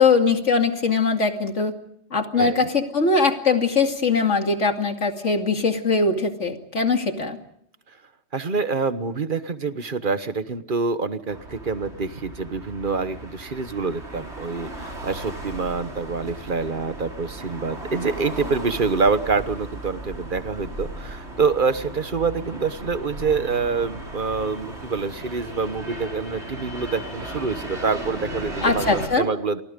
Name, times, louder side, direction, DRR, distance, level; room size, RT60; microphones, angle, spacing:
voice 1, 0.0-1.7 2.1-7.4 28.6-29.3, left 4 dB, 80° left, 5 dB, 2.8 m, -21 dB
voice 2, 8.3-29.6, right 4 dB, 45° right, 12 dB, 1.4 m, -26 dB
sound 1, 11.3-29.1, right 1 dB, 65° right, 6.5 m, -36 dB
30.0 x 24.0 x 5.3 m, 0.70 s
omnidirectional pair, 1.2 m